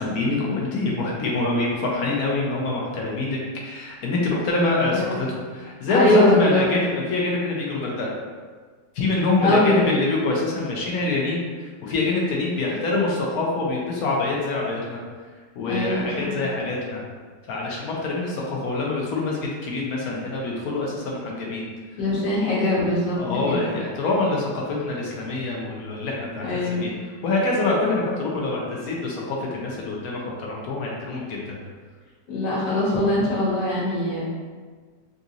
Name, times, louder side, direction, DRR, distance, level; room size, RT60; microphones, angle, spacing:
voice 1, 0.0-8.1 8.9-15.0 15.6-17.0 17.5-21.7 23.2-26.9 27.2-31.6, left 2 dB, 65° left, -2 dB, 1.0 m, -25 dB
voice 2, 5.9-6.6 9.4-9.9 15.6-16.3 22.0-23.2 23.5-23.7 26.4-26.9 32.3-34.2, left 1 dB, 80° left, -6 dB, 1.6 m, -22 dB
3.8 x 2.7 x 2.4 m, 1.5 s
omnidirectional pair, 1.9 m